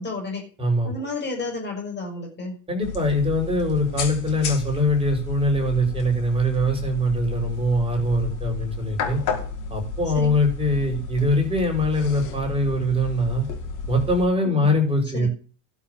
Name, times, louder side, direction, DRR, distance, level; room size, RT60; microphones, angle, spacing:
voice 1, 0.0-0.4 0.8-2.6 10.1-10.4 14.4-14.7 15.1-15.3, left 3 dB, 20° left, 0 dB, 6.1 m, -31 dB
voice 2, 0.6-1.1 2.7-9.2 9.7-13.4 13.9-15.3, left 1 dB, 10° right, 2 dB, 7.7 m, -22 dB
sound 1, 2.8-14.3, left 5 dB, 40° left, 5.2 m, -33 dB
12.5 x 7.4 x 8.7 m, 0.38 s
supercardioid pair, 145°, 48 cm